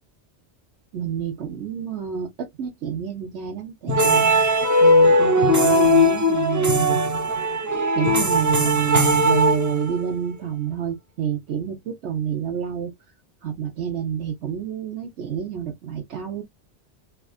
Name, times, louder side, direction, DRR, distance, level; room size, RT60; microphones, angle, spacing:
voice 1, 0.9-4.2 4.8-7.0 7.9-12.9 13.4-16.4, right 8 dB, 70° right, 1.1 m, -28 dB
sound 1, 3.9-10.2, equal, 25° right, 0.4 m, -18 dB
3.4 x 2.5 x 2.3 m
omnidirectional pair, 1.2 m